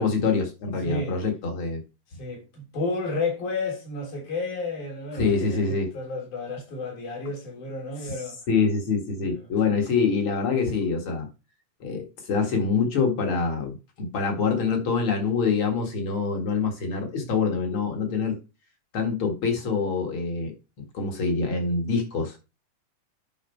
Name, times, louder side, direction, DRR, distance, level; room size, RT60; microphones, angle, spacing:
voice 1, 0.0-1.8 5.1-5.9 8.5-11.3 11.8-18.4 18.9-22.4, left 4 dB, 45° left, 2.5 m, -25 dB
voice 2, 0.8-1.1 2.2-8.4 9.3-9.5, left 3 dB, 75° left, 4.8 m, -32 dB
11.0 x 4.7 x 4.5 m
omnidirectional pair, 3.5 m